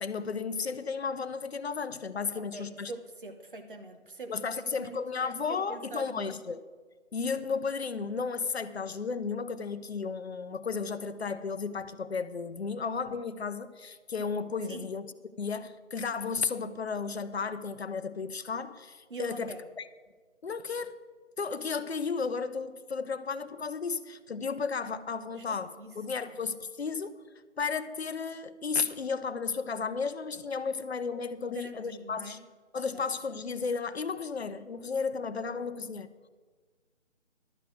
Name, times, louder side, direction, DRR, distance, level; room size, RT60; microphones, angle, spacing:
voice 1, 0.0-2.9 4.3-6.6 7.1-15.1 15.4-19.5 19.8-19.9 20.4-21.0 21.4-27.1 27.6-32.4 32.7-36.3, left 5 dB, 60° left, 13 dB, 0.7 m, -34 dB
voice 2, 2.3-4.3 4.7-5.0 5.5-6.3 14.7-14.8 19.1-19.6 25.4-25.9 26.2-26.4 31.5-32.4 32.9-33.0, right 3 dB, 45° right, 7 dB, 1.1 m, -44 dB
12.0 x 6.6 x 7.6 m, 1.4 s
figure-of-eight pair, 165°, 36 cm